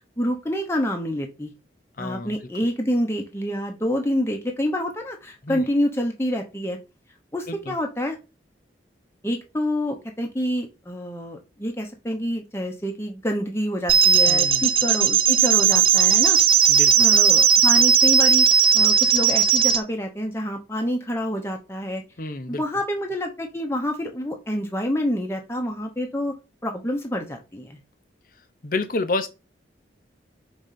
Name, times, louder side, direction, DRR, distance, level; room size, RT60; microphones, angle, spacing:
voice 1, 0.2-1.5 2.0-6.8 7.3-8.2 9.2-16.4 17.0-18.5 18.7-22.0 22.5-26.3 26.6-27.8, equal, 15° left, 1.0 m, -27 dB
voice 2, 2.0-2.4 5.4-5.6 7.5-7.7 14.3-14.7 16.7-16.9 22.2-22.6 28.6-29.3, left 2 dB, 50° left, 0.8 m, -29 dB
sound 1, 13.9-19.8, right 7 dB, 30° right, 0.5 m, -17 dB
5.2 x 3.9 x 5.8 m
head